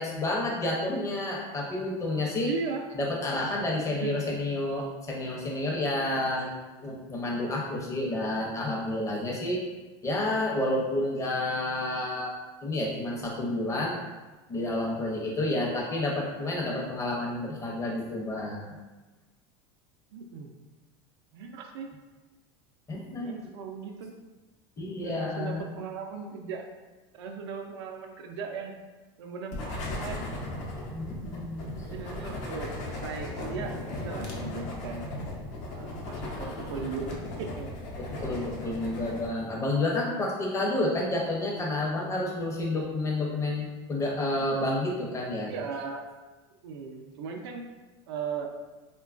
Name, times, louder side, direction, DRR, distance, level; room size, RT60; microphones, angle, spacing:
voice 1, 0.0-2.5 2.9-6.5 6.8-9.6 10.0-12.3 12.6-14.0 14.5-18.7 22.9-23.4 24.8-25.7 30.9-31.7 38.2-45.5, left 2 dB, 20° left, -2 dB, 0.6 m, -30 dB
voice 2, 2.4-3.0 3.9-4.4 20.1-20.6 21.3-21.9 22.9-24.1 25.0-26.7 27.1-28.8 29.2-30.2 31.8-35.1 35.7-37.7 38.3-38.5 45.5-46.1 46.6-47.6 48.1-48.5, right 5 dB, 85° right, 3 dB, 0.4 m, -38 dB
sound 1, 29.5-39.3, left 1 dB, 60° left, 0.7 m, -37 dB
3.1 x 2.2 x 2.4 m, 1.2 s
supercardioid pair, 120°, 13 cm